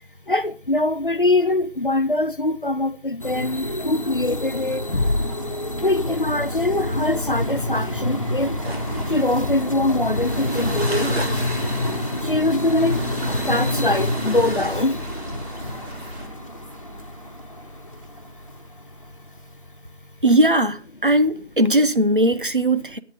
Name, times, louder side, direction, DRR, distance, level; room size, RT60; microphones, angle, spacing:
voice 1, 0.3-5.2 5.8-8.5 9.1-11.1 12.2-13.0 13.4-15.0 22.8-22.9, left 2 dB, 50° left, 0.6 m, -23 dB
sound 1, 3.2-18.5, left 1 dB, 30° left, 1.5 m, -28 dB
sound 2, 8.6-16.3, right 1 dB, 65° right, 3.3 m, -35 dB
voice 2, 20.2-23.0, right 1 dB, 50° right, 0.8 m, -19 dB
21.5 x 8.8 x 3.6 m
figure-of-eight pair, 175°, 34 cm